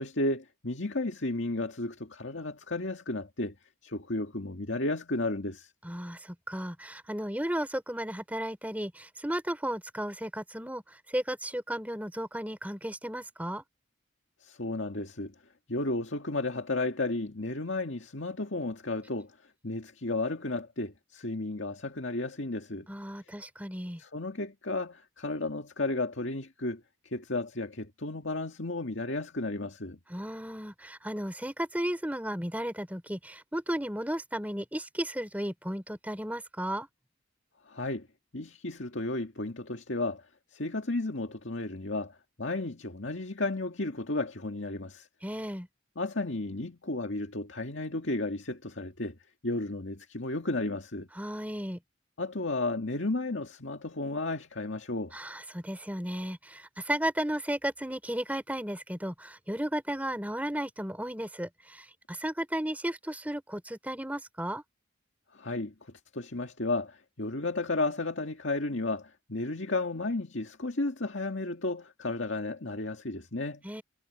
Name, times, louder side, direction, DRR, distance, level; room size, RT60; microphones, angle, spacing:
voice 1, 0.0-3.5 3.8-5.7 14.4-15.3 15.7-19.3 19.6-22.9 24.0-30.0 37.7-38.1 38.3-40.3 40.5-45.1 46.0-49.2 49.4-51.1 52.2-55.1 65.3-73.6, left 2 dB, 65° left, 2.0 m, -33 dB
voice 2, 5.8-13.6 22.9-24.0 30.1-36.9 45.2-45.7 51.1-51.8 55.1-64.6 73.6-73.8, right 1 dB, 5° right, 3.2 m, -34 dB
head